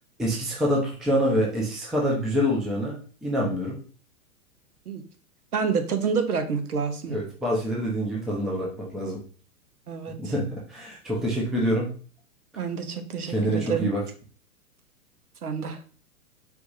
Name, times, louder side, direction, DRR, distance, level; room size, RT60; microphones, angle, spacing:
voice 1, 0.2-3.8 7.1-9.2 10.2-11.9 13.3-14.0, equal, ahead, -3 dB, 0.4 m, -26 dB
voice 2, 5.5-7.2 9.9-10.3 12.6-13.9 15.4-15.8, right 6 dB, 85° right, 7 dB, 0.9 m, -28 dB
4.7 x 2.5 x 3.9 m, 0.41 s
hypercardioid pair, 115°, 44 cm